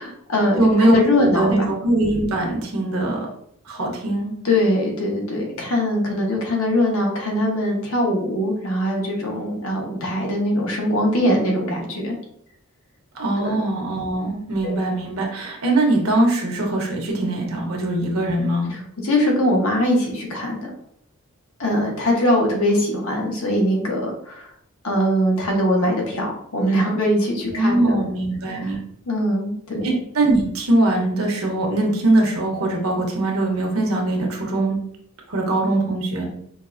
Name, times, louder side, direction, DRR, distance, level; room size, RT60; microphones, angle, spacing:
voice 1, 0.0-1.7 4.4-12.2 13.4-13.6 14.6-14.8 18.7-20.6 21.6-24.5 24.8-28.0 28.5-28.7 29.1-29.9, left 1 dB, 80° left, 0 dB, 1.1 m, -22 dB
voice 2, 0.6-3.3 3.6-4.3 13.1-18.8 27.5-28.8 29.8-34.8 35.3-36.3, right 2 dB, 80° right, 1 dB, 1.0 m, -21 dB
5.2 x 2.4 x 2.5 m, 0.69 s
head